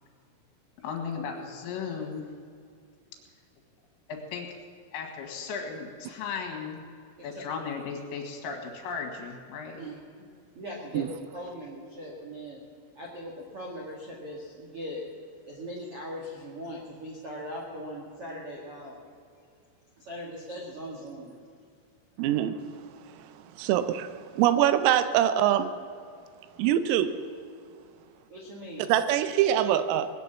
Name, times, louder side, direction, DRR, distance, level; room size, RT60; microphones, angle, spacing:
voice 1, 0.8-2.3 4.1-4.5 4.9-6.8 7.2-9.8, left 5 dB, 75° left, 3 dB, 4.4 m, -36 dB
voice 2, 10.5-11.0 11.3-12.6 12.9-15.0 15.4-19.0 20.0-21.3 28.3-28.9, equal, 65° right, -2 dB, 1.4 m, -40 dB
voice 3, 22.2-22.6 23.2-23.3 23.6-25.7 26.6-27.1 28.9-30.1, right 11 dB, 85° right, 12 dB, 3.3 m, -24 dB
20.0 x 9.4 x 7.4 m, 2.4 s
omnidirectional pair, 6.0 m